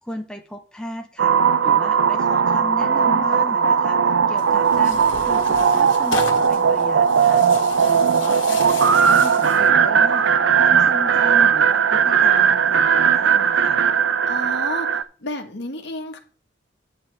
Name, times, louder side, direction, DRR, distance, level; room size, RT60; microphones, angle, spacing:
voice 1, 0.0-1.4 1.6-7.4 7.8-10.3 10.5-13.8, left 1 dB, 5° left, 4 dB, 0.7 m, -35 dB
sound 1, 1.2-15.0, right 7 dB, 75° right, 0.5 m, -18 dB
sound 2, 2.7-2.8 4.0-8.5, right 2 dB, 55° right, 2.9 m, -44 dB
Tearing, 4.4-9.7, left 5 dB, 80° left, 1.6 m, -35 dB
voice 2, 14.3-16.2, left 1 dB, 65° left, 4 dB, 1.6 m, -31 dB
9.5 x 9.2 x 3.4 m, 0.39 s
head